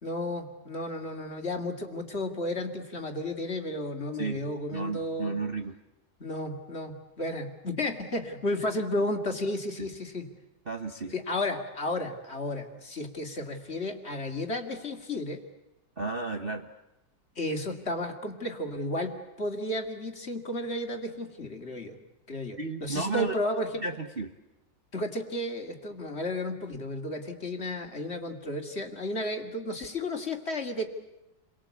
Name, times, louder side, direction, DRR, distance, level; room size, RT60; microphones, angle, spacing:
voice 1, 0.0-5.4 6.2-10.3 11.1-15.4 17.4-22.0 22.3-23.8 24.9-30.8, left 1 dB, 35° left, 5 dB, 2.5 m, -33 dB
voice 2, 4.7-5.8 9.8-9.9 10.7-11.1 16.0-16.7 22.6-23.3 23.8-24.3, right 3 dB, 35° right, 5 dB, 1.2 m, -33 dB
29.5 x 23.0 x 8.4 m, 0.94 s
omnidirectional pair, 2.0 m